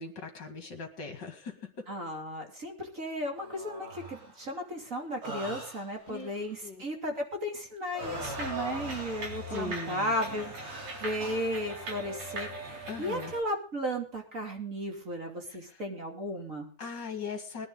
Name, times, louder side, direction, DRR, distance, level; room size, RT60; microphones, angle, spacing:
voice 1, 0.0-1.6 6.1-6.3 6.6-6.8 9.5-10.1 12.9-13.3 15.5-15.8 16.8-17.7, left 4 dB, 35° left, 5 dB, 2.3 m, -39 dB
voice 2, 1.9-16.7, equal, 25° right, 2 dB, 2.8 m, -35 dB
sound 1, 3.3-4.5 5.2-6.5 7.9-11.4 12.1-12.4 12.8-13.1 14.9-15.0, right 1 dB, 70° right, 7.8 m, -42 dB
sound 2, 8.0-13.4, right 1 dB, 50° right, 4.6 m, -40 dB
21.5 x 10.5 x 3.9 m, 0.36 s
omnidirectional pair, 3.7 m